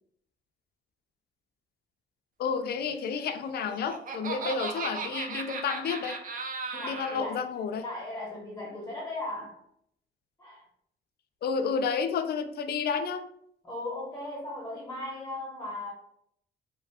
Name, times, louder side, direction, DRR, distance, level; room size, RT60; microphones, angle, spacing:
voice 1, 2.4-6.2 6.7-7.8 11.4-13.3, left 6 dB, 55° left, 8 dB, 0.4 m, -31 dB
Laughter, 3.4-7.2, right 4 dB, 45° right, 0.5 m, -36 dB
voice 2, 6.8-7.5 7.7-9.6 10.4-10.7 13.6-15.9, left 2 dB, 10° left, -4 dB, 0.9 m, -37 dB
2.7 x 2.3 x 3.4 m, 0.70 s
cardioid pair, 90°, 20 cm